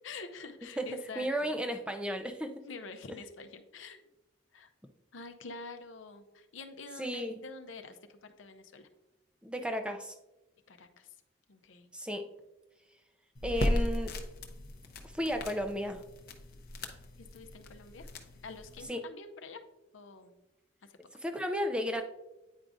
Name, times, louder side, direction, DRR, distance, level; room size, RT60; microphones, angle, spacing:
voice 1, 0.0-1.5 2.6-4.0 4.5-4.7 5.1-8.9 10.7-11.2 11.5-11.9 17.2-18.1 18.4-19.6 19.9-20.3 20.9-21.0, left 4 dB, 85° left, 7 dB, 0.6 m, -47 dB
voice 2, 1.2-2.6 7.0-7.4 9.4-10.1 11.9-12.3 13.4-14.2 15.1-16.0 18.9-19.0 21.2-22.0, equal, 5° right, 6 dB, 0.4 m, -33 dB
sound 1, 13.4-18.9, left 1 dB, 50° left, 0.7 m, -36 dB
9.0 x 4.8 x 2.5 m, 0.99 s
head